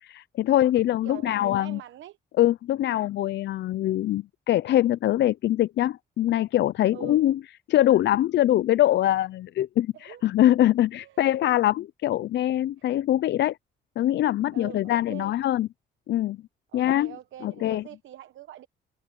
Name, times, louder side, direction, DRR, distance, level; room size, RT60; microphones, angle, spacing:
voice 1, 0.0-1.8 2.4-7.4 7.7-13.6 14.0-15.7 16.1-16.4 16.7-17.2 17.4-17.8, left 13 dB, 60° left, 0.5 m, -23 dB
voice 2, 1.0-2.4 6.9-7.2 9.9-10.2 11.0-11.2 12.8-12.9 14.5-15.3 16.7-18.7, right 12 dB, 75° right, 1.0 m, -44 dB
cardioid pair, 90°, 20 cm